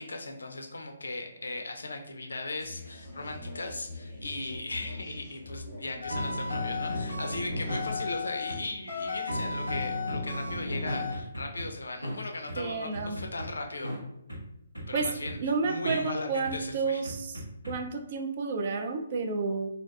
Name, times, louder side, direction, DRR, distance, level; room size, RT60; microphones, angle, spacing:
voice 1, 0.0-13.9 14.9-17.0, left 2 dB, 65° left, 4 dB, 0.4 m, -38 dB
sound 1, 2.6-9.2, left 2 dB, 20° left, 0.7 m, -45 dB
sound 2, 6.0-8.6 8.9-11.7 12.0-12.2 12.5-12.6 12.9-13.5 13.8-14.0 14.3-14.4 14.8-15.3 15.8-16.0 16.4-16.5 17.0-17.7, left 2 dB, 90° right, 1.0 m, -33 dB
voice 2, 12.6-13.2 14.9-15.1 15.4-17.3 17.7-19.7, right 4 dB, 40° right, 4 dB, 0.3 m, -30 dB
2.4 x 2.2 x 2.3 m, 0.79 s
figure-of-eight pair, 135°, 0 cm